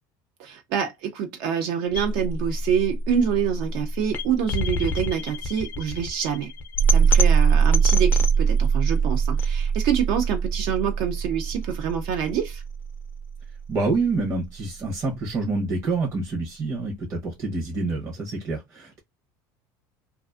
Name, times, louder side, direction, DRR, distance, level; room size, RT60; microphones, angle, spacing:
voice 1, 0.4-6.5 6.9-12.6, right 8 dB, 60° right, 0.5 m, -26 dB
sound 1, 1.9-14.0, right 5 dB, 20° left, 0.4 m, -23 dB
voice 2, 13.7-19.0, right 3 dB, 30° right, 0.7 m, -27 dB
2.4 x 2.3 x 2.3 m
cardioid pair, 150°, 9 cm